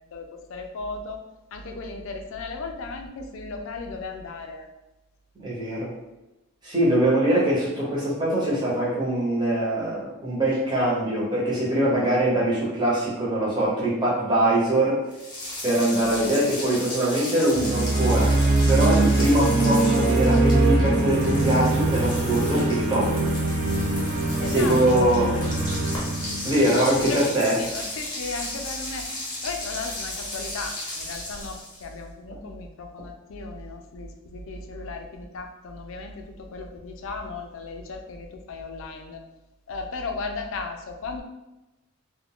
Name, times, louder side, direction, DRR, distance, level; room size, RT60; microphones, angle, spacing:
voice 1, 0.1-1.2 1.5-4.7 16.0-16.3 24.3-25.5 26.9-29.1 29.4-39.2 39.7-41.2, left 3 dB, 60° left, 4 dB, 0.4 m, -36 dB
voice 2, 5.4-5.9 6.6-15.0 15.6-23.3 24.5-25.3 26.4-27.6, right 1 dB, 20° right, -6 dB, 0.7 m, -23 dB
sound 1, 15.1-31.9, left 1 dB, 20° left, 0.8 m, -35 dB
sound 2, 17.5-27.6, right 2 dB, 45° right, 0.3 m, -23 dB
2.3 x 2.1 x 3.6 m, 0.99 s
head